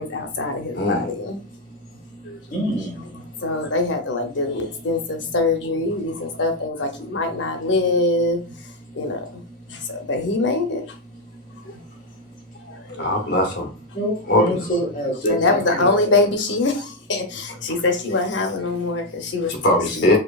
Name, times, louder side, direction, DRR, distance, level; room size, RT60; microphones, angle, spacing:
voice 1, 0.0-1.4 2.3-2.4 3.4-8.4 9.0-9.2 9.9-10.8 12.9-13.1 15.3-19.5, left 2 dB, 85° left, 0.8 m, -23 dB
voice 2, 0.7-1.1 13.0-13.7 14.3-14.6 19.5-20.2, left 1 dB, 65° left, 0.9 m, -20 dB
voice 3, 2.5-3.0 13.9-16.3, equal, 45° left, 1.5 m, -25 dB
4.5 x 2.6 x 2.3 m
head